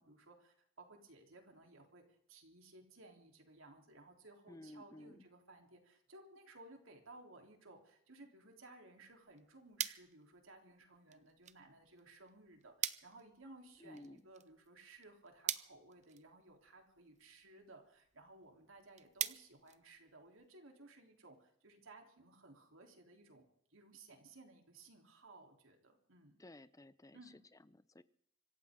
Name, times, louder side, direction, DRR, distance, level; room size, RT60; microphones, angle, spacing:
voice 1, 0.0-26.4 27.1-27.4, right 2 dB, 85° right, 3 dB, 3.6 m, -59 dB
voice 2, 4.5-5.2 13.8-14.2 26.4-27.2 27.7-28.0, left 1 dB, 15° left, 15 dB, 0.7 m, -55 dB
sound 1, 9.1-20.5, right 10 dB, 35° right, 0.7 m, -47 dB
25.5 x 15.0 x 3.8 m, 0.68 s
head